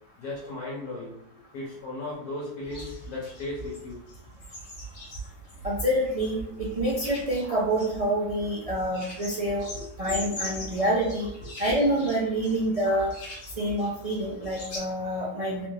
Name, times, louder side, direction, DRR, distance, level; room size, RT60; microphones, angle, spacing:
voice 1, 0.2-1.2 1.5-4.0 9.7-9.8 11.4-11.5, left 2 dB, 70° left, -5 dB, 1.4 m, -36 dB
sound 1, 2.6-14.8, equal, 50° left, 1.2 m, -41 dB
voice 2, 5.6-6.4 6.7-9.7 10.0-11.3 11.6-13.1 13.6-15.7, right 1 dB, 60° right, -6 dB, 0.3 m, -27 dB
4.0 x 2.5 x 3.2 m, 0.78 s
omnidirectional pair, 1.7 m